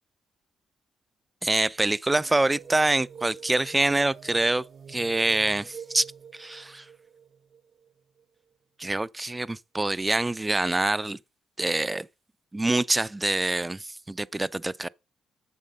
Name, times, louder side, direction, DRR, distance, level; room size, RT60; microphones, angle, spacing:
voice 1, 1.4-6.0 6.3-6.9 8.8-11.2 11.6-12.1 12.5-14.9, right 2 dB, 15° right, 0.5 m, -25 dB
sound 1, 2.1-8.5, right 7 dB, 55° right, 0.8 m, -47 dB
7.5 x 7.3 x 5.4 m
supercardioid pair, 70°, 0 cm